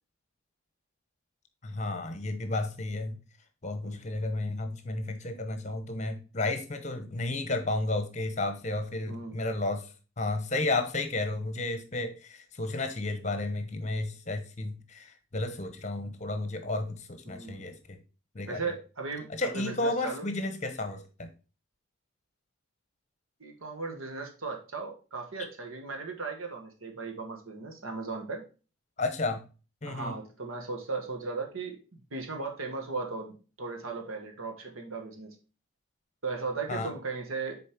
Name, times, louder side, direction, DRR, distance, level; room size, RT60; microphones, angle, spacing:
voice 1, 1.6-3.2 3.6-18.0 18.3-18.6 19.3-21.3 29.0-29.4 29.8-30.1 36.7-36.9, left 2 dB, 35° left, 8 dB, 0.8 m, -32 dB
voice 2, 9.1-9.4 17.2-17.6 18.5-20.3 23.4-28.4 29.8-35.3 36.2-37.6, right 4 dB, 85° right, 3 dB, 1.4 m, -37 dB
6.9 x 4.3 x 4.4 m, 0.34 s
head